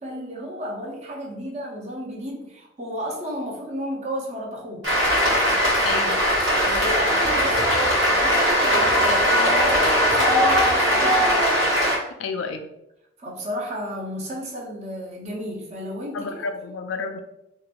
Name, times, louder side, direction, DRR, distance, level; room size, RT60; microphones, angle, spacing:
voice 1, 0.0-4.9 6.6-11.5 13.2-16.5, equal, 35° right, -1 dB, 0.5 m, -33 dB
Cheering / Applause, 4.8-12.0, equal, 85° right, 1.5 m, -19 dB
voice 2, 5.8-6.3 12.2-12.7 16.1-17.2, left 4 dB, 85° left, 6 dB, 0.3 m, -30 dB
2.9 x 2.2 x 2.4 m, 0.84 s
head